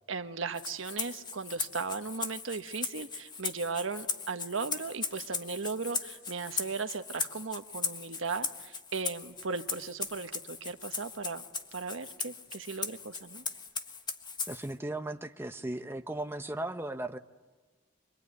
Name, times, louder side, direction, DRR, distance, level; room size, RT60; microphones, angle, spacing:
voice 1, 0.1-11.5 11.7-13.4, right 4 dB, 85° right, 8 dB, 1.3 m, -37 dB
Rattle (instrument), 0.5-14.7, left 5 dB, 25° left, 1.5 m, -38 dB
voice 2, 14.5-17.2, right 1 dB, 10° right, 6 dB, 0.9 m, -36 dB
26.0 x 23.5 x 9.5 m, 1.3 s
head